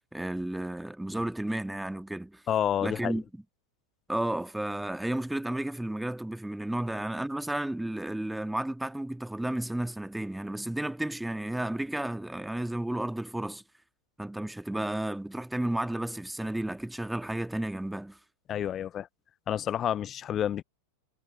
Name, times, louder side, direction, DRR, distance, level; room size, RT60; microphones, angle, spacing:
voice 1, 0.1-2.4 2.8-3.4 4.1-13.6 14.2-18.2, right 1 dB, 5° right, 1.8 m, -32 dB
voice 2, 2.5-3.2 18.5-19.1 19.5-20.6, left 10 dB, 25° left, 0.5 m, -29 dB
figure-of-eight pair, 90°, 0 cm